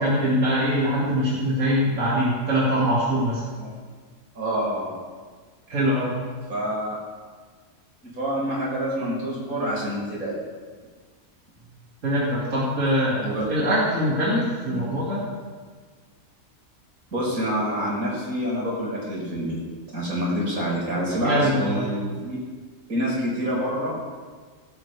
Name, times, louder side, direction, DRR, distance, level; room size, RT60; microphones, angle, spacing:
voice 1, 0.0-3.4 5.7-6.2 12.0-13.2 13.5-15.2 21.2-21.9, equal, 65° right, -7 dB, 2.6 m, -23 dB
voice 2, 4.4-4.9 6.5-7.0 8.0-10.4 13.2-13.5 14.7-14.9 17.1-19.6 19.9-22.4 22.9-24.0, equal, 90° right, -5 dB, 5.3 m, -27 dB
17.5 x 12.0 x 3.4 m, 1.5 s
omnidirectional pair, 1.4 m